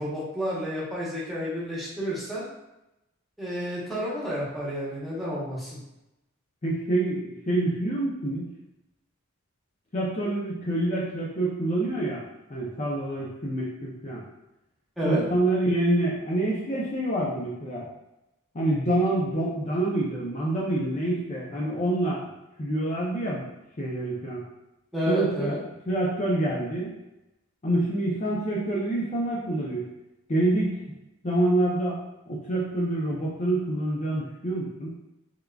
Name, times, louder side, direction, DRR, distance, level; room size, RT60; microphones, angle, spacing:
voice 1, 0.0-2.5 3.4-5.7 15.0-15.2 24.9-25.6, equal, ahead, -8 dB, 1.0 m, -30 dB
voice 2, 6.6-8.4 9.9-12.2 12.5-14.2 15.0-17.9 18.5-22.3 22.6-23.4 23.8-24.4 25.1-25.6 25.9-26.9 27.6-29.9 30.3-30.8 31.2-32.0 32.3-34.9, right 1 dB, 35° left, -5 dB, 0.5 m, -26 dB
3.6 x 3.4 x 2.3 m, 0.92 s
head